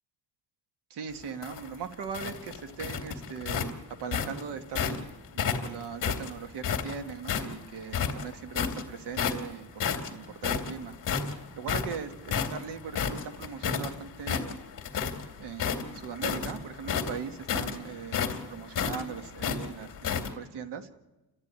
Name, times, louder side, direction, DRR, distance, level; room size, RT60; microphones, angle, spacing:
voice 1, 0.9-5.1 5.3-14.6 15.4-20.9, right 6 dB, 80° right, 8 dB, 1.8 m, -40 dB
sound 1, 1.2-5.0 5.4-7.5 7.9-8.8 9.1-9.5 9.8-13.9 14.2-15.2 15.5-20.3, left 7 dB, 50° left, 2.4 m, -31 dB
29.0 x 13.5 x 9.6 m, 1.1 s
cardioid pair, 170°, 40 cm